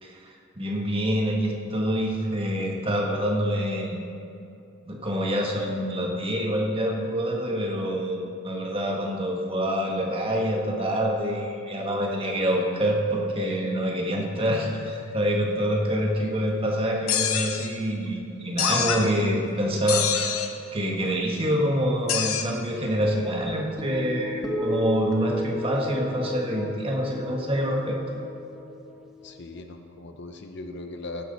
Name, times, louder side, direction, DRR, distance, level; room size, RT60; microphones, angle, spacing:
voice 1, 0.0-3.9 4.8-20.1 20.7-28.0, equal, 25° right, -1 dB, 1.5 m, -26 dB
sound 1, 17.1-17.7 18.6-19.1 19.9-20.5 22.1-22.4, left 8 dB, 90° left, 0.9 m, -25 dB
sound 2, 23.0-29.6, equal, 5° right, 1.1 m, -34 dB
voice 2, 29.2-31.2, left 2 dB, 55° left, 5 dB, 0.8 m, -39 dB
15.5 x 10.5 x 4.1 m, 2.6 s
head